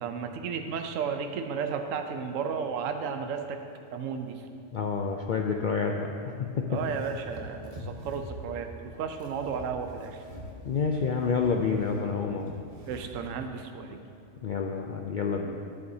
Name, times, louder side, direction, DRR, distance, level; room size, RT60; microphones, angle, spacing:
voice 1, 0.0-3.6 3.9-4.4 6.7-10.2 12.9-14.0, right 6 dB, 75° right, 6 dB, 1.0 m, -33 dB
voice 2, 4.7-6.8 10.6-12.5 14.4-15.6, left 5 dB, 70° left, 2 dB, 0.4 m, -29 dB
sound 1, 6.7-13.3, equal, 30° right, 1.1 m, -45 dB
12.5 x 7.8 x 2.7 m, 2.7 s
omnidirectional pair, 1.4 m